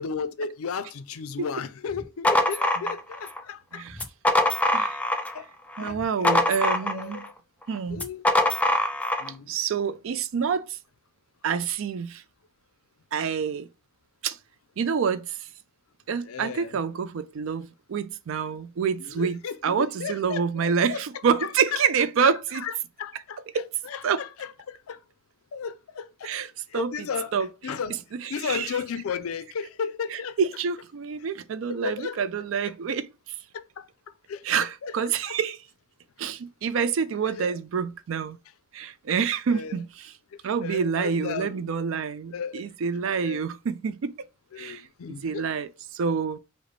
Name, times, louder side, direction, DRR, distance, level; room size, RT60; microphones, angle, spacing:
voice 1, 0.0-3.9 5.0-5.1 5.3-5.5 5.8-6.3 6.7-7.3 7.9-8.2 9.2-9.6 16.2-16.8 19.0-21.0 21.4-21.8 22.2-25.0 25.5-26.3 26.7-27.3 27.6-28.0 28.3-30.4 31.7-32.2 33.5-33.9 34.3-34.4 34.8-35.3 37.4-37.6 39.2-39.7 40.6-41.6 42.3-42.7 43.2-43.4 44.5-45.4, left 6 dB, 85° left, 0.4 m, -34 dB
sound 1, 1.9-3.4 3.9-5.4 5.7-7.3 7.9-9.3, left 1 dB, 5° left, 0.3 m, -24 dB
voice 2, 5.8-7.2 7.7-8.0 9.5-10.7 11.4-12.2 13.1-13.7 14.2-14.4 14.8-15.3 16.1-22.6 23.5-23.7 24.0-24.2 26.2-26.5 26.7-26.9 27.3-27.5 28.2-28.7 30.1-33.1 34.4-35.6 36.2-38.4 38.7-40.1 40.4-44.3 44.6-44.8 45.1-46.4, right 6 dB, 65° right, 0.4 m, -27 dB
4.9 x 2.1 x 3.1 m
head